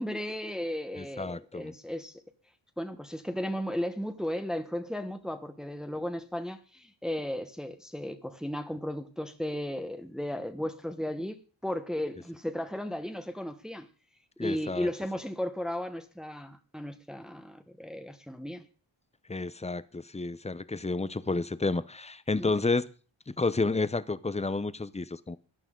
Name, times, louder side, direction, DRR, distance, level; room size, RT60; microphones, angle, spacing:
voice 1, 0.0-2.1 2.8-11.4 11.6-13.9 14.4-18.6 22.4-22.5, left 1 dB, ahead, 1.1 m, -35 dB
voice 2, 1.0-1.7 14.4-14.9 19.3-22.8 23.3-25.4, left 3 dB, 15° left, 0.6 m, -30 dB
16.5 x 11.5 x 3.8 m
wide cardioid pair, 105°, 47 cm